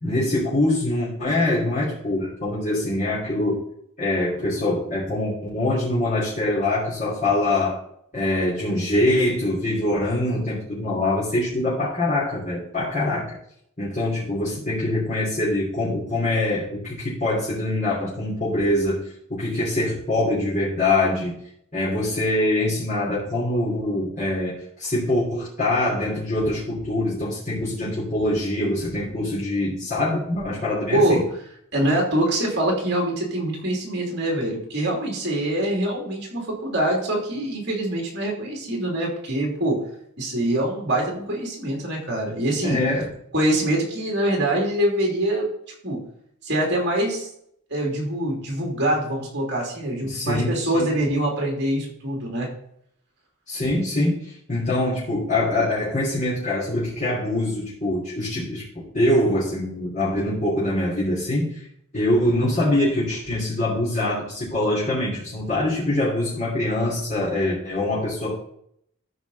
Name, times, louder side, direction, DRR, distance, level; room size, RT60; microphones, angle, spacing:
voice 1, 0.0-3.6 4.0-7.8 8.1-13.2 13.8-21.4 21.7-31.2 42.6-43.1 50.0-50.9 53.5-61.6 61.9-68.3, left 1 dB, 35° left, -10 dB, 3.2 m, -24 dB
voice 2, 31.7-39.8 40.2-42.8 43.3-45.5 45.8-46.0 46.4-47.3 47.7-52.5, right 1 dB, 50° right, 0 dB, 3.1 m, -24 dB
13.0 x 5.2 x 4.2 m, 0.70 s
head